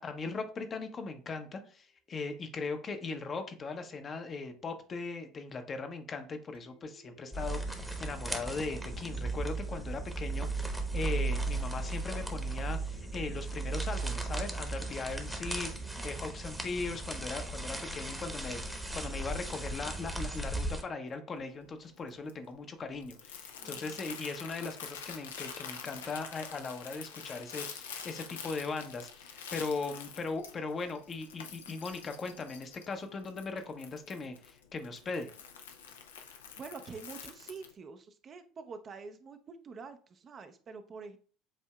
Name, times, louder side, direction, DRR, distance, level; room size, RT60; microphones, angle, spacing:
voice 1, 0.0-35.3, left 4 dB, 35° left, 6 dB, 0.7 m, -39 dB
sound 1, 1.8-1.9 6.5-21.7, right 2 dB, 80° right, 2.3 m, -60 dB
sound 2, 7.3-20.8, right 2 dB, 5° right, 0.9 m, -36 dB
voice 2, 16.0-16.3 23.6-24.0 36.6-41.2, right 4 dB, 35° right, 8 dB, 0.5 m, -47 dB
Crumpling crinkling, 21.3-37.7, left 7 dB, 75° left, 0.5 m, -47 dB
7.3 x 2.7 x 2.2 m, 0.41 s
figure-of-eight pair, 65°, 0 cm